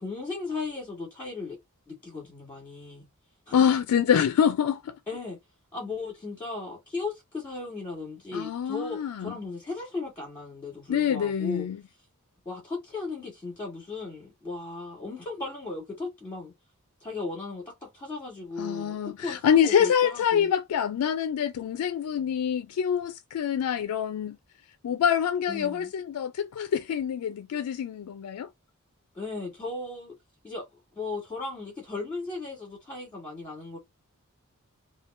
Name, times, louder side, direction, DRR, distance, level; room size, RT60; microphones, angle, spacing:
voice 1, 0.0-1.6 1.9-3.1 3.5-3.6 5.1-5.4 5.7-11.7 12.4-16.5 17.0-20.5 25.5-25.9 29.1-30.1 30.4-30.6 30.9-33.8, left 3 dB, 10° left, 1.5 m, -36 dB
voice 2, 3.5-5.0 8.3-9.3 10.9-11.8 18.6-24.4 24.8-28.5, left 8 dB, 80° left, 0.3 m, -26 dB
3.5 x 2.2 x 2.5 m
head